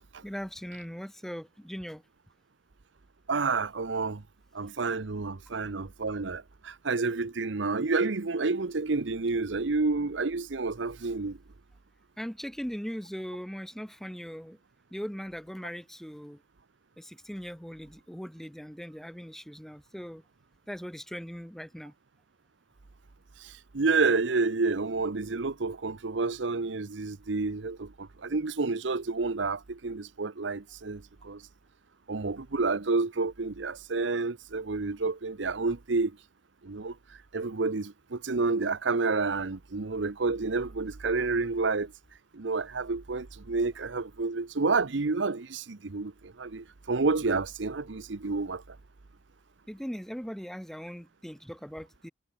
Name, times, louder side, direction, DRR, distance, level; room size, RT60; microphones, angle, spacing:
voice 1, 0.2-2.0 12.2-14.6 14.9-16.4 17.0-20.2 20.7-21.9 49.7-52.1, equal, ahead, 0.8 m, -39 dB
voice 2, 3.3-4.2 4.5-11.4 23.4-31.4 32.1-36.1 36.6-36.9 37.3-41.9 42.3-48.8, right 3 dB, 80° right, 0.9 m, -29 dB
head